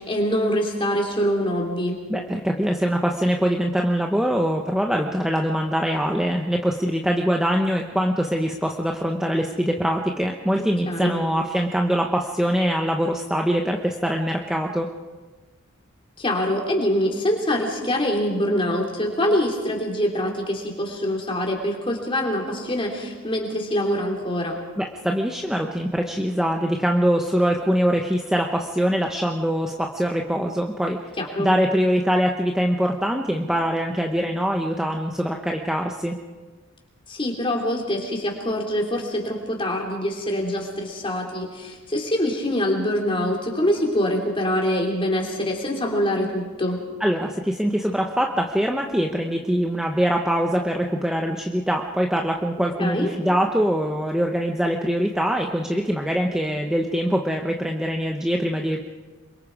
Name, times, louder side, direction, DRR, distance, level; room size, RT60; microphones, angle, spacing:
voice 1, 0.0-2.0 10.9-11.3 16.2-24.6 31.2-31.5 37.1-46.8 52.8-53.1, equal, 25° left, 0 dB, 3.7 m, -24 dB
voice 2, 2.1-14.9 24.8-31.0 31.4-36.2 47.0-58.8, equal, 5° right, 1 dB, 0.9 m, -23 dB
26.5 x 23.0 x 4.9 m, 1.3 s
head